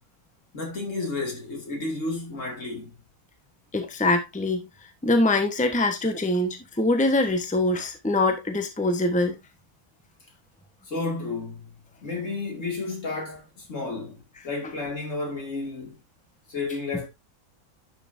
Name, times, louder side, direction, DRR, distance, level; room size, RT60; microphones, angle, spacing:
voice 1, 0.5-2.9 10.9-11.7 12.0-16.0 16.5-17.1, left 3 dB, 55° left, 2.9 m, -32 dB
voice 2, 3.7-4.7 5.0-9.4, left 2 dB, 5° left, 1.1 m, -23 dB
11.0 x 6.0 x 2.7 m
omnidirectional pair, 1.6 m